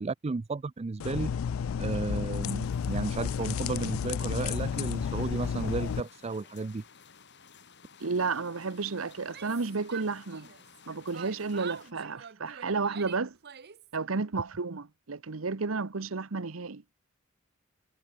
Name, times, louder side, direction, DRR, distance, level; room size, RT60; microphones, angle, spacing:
voice 1, 0.0-1.3 1.8-6.8, right 3 dB, 30° right, 0.4 m, -33 dB
sound 1, 1.0-6.0, left 7 dB, 80° left, 0.4 m, -31 dB
sound 2, 2.4-11.9, left 6 dB, 60° left, 6.2 m, -56 dB
voice 2, 8.0-10.5 10.9-13.3 13.9-16.8, right 4 dB, 80° right, 1.0 m, -32 dB
Yell, 9.2-10.8 11.1-13.9, right 8 dB, 55° right, 0.9 m, -46 dB
head